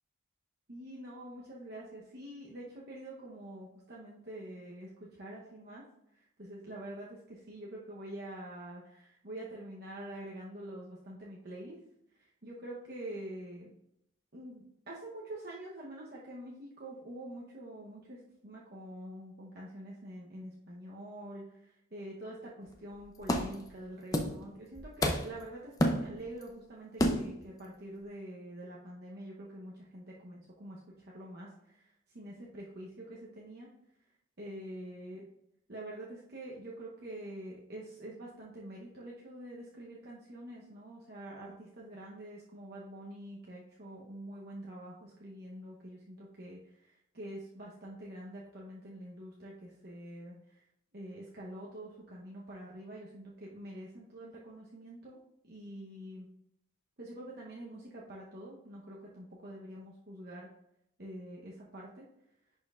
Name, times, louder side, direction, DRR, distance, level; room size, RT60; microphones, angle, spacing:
voice 1, 0.7-5.8 6.4-11.8 12.4-13.7 14.3-21.4 21.9-31.8 32.1-33.7 34.4-35.2 35.7-46.6 47.1-50.6 50.9-55.2 55.4-56.3 57.0-60.5 61.0-62.0, right 1 dB, 50° right, -5 dB, 0.9 m, -46 dB
sound 1, 22.7-22.8 23.2-23.7 24.1-24.4 24.8-25.4 25.8-26.4 27.0-27.4, equal, 15° left, 0.5 m, -30 dB
10.5 x 4.4 x 2.4 m, 0.78 s
head